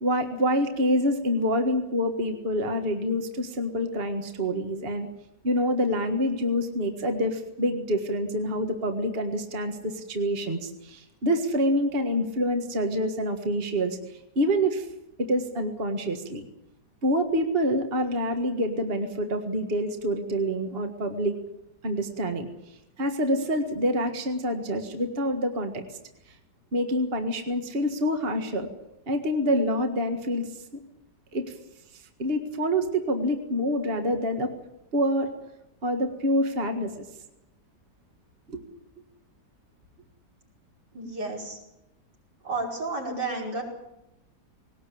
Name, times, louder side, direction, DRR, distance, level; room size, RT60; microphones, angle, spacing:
voice 1, 0.0-5.1 5.4-14.9 15.2-16.4 17.0-21.4 21.8-22.5 23.0-26.0 26.7-28.7 29.1-30.5 31.3-31.5 31.9-34.5 34.9-35.3 35.8-37.1 38.5-38.6, equal, 35° right, 6 dB, 1.9 m, -26 dB
voice 2, 40.9-41.6 42.4-43.6, right 3 dB, 70° right, -1 dB, 6.0 m, -31 dB
20.0 x 18.5 x 8.5 m, 0.86 s
omnidirectional pair, 1.9 m